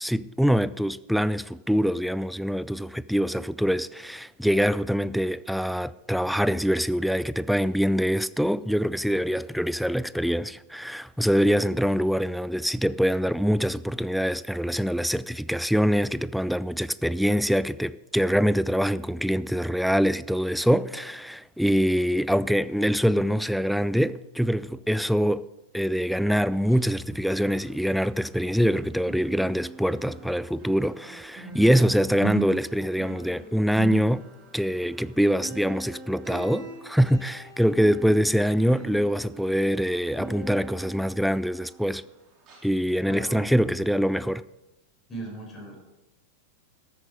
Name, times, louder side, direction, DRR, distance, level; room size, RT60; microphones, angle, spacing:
voice 1, 0.0-25.5 25.7-34.3 34.5-42.0 42.6-44.4, equal, ahead, 0.3 m, -24 dB
sound 1, 26.5-28.7 29.0-42.1 42.5-42.7 43.2-43.3, right 3 dB, 30° right, 3.7 m, -41 dB
voice 2, 43.1-43.4 45.1-45.8, right 2 dB, 20° left, 4.6 m, -37 dB
13.5 x 8.6 x 5.1 m
figure-of-eight pair, 90°, 0 cm